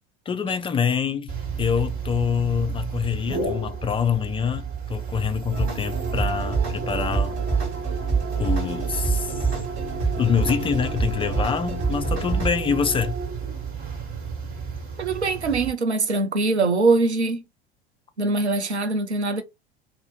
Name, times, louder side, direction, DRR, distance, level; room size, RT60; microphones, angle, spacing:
voice 1, 0.3-1.3 1.6-7.4 8.4-9.3 10.2-13.2, left 7 dB, 15° left, 0.4 m, -25 dB
sound 1, 1.3-15.7, right 5 dB, 55° right, 2.0 m, -32 dB
sound 2, 5.5-12.5, right 4 dB, 40° right, 1.9 m, -27 dB
voice 2, 15.0-17.4 18.2-19.4, right 3 dB, 90° right, 0.7 m, -22 dB
2.9 x 2.7 x 4.1 m
figure-of-eight pair, 75°, 32 cm